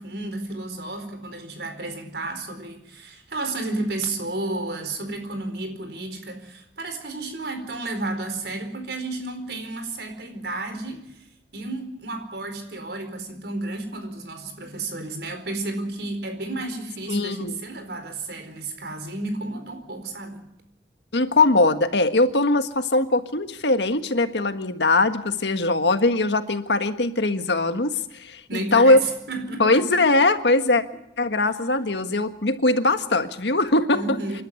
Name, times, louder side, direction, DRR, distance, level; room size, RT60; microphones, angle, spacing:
voice 1, 0.0-11.3 11.5-20.4 28.5-29.9 31.4-31.5 33.9-34.4, right 2 dB, 70° right, 4.5 m, -32 dB
voice 2, 17.1-17.5 21.1-29.0 29.6-30.8 31.2-34.2, left 2 dB, 80° left, 1.6 m, -21 dB
27.5 x 12.0 x 9.6 m
head